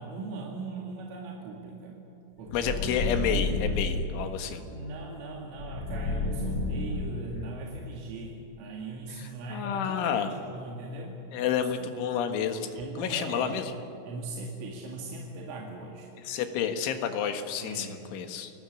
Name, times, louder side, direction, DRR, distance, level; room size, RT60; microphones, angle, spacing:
voice 1, 0.0-2.0 2.4-2.9 4.7-11.2 12.7-13.6 14.0-16.1 17.6-18.0, right 2 dB, 85° right, -1 dB, 4.9 m, -39 dB
voice 2, 2.5-4.6 9.1-10.3 11.3-13.7 16.2-18.5, left 8 dB, 75° left, 6 dB, 4.0 m, -30 dB
sound 1, 2.5-4.1 5.6-7.4, left 2 dB, 25° left, 7.1 m, -30 dB
29.0 x 19.5 x 8.5 m, 2.9 s
omnidirectional pair, 5.6 m